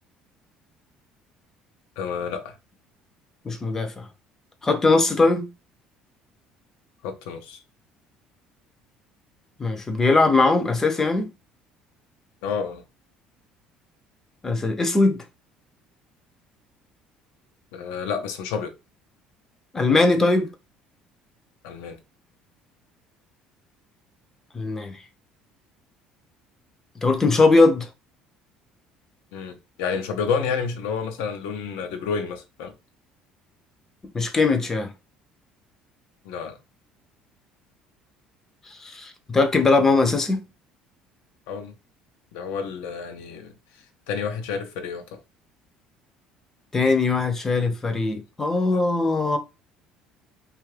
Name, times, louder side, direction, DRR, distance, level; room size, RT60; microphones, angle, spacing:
voice 1, 2.0-2.6 7.0-7.6 12.4-12.8 17.7-18.7 21.6-22.0 29.3-32.7 36.2-36.6 41.5-41.7 42.3-43.5 44.1-45.2, left 6 dB, 90° left, 0.6 m, -30 dB
voice 2, 3.4-4.1 4.6-5.5 9.6-11.3 14.4-15.2 19.7-20.5 24.5-25.0 27.0-27.9 34.1-34.9 38.7-40.4 46.7-49.4, left 3 dB, 20° left, 0.6 m, -20 dB
2.7 x 2.4 x 3.2 m
cardioid pair, 120°, 2 cm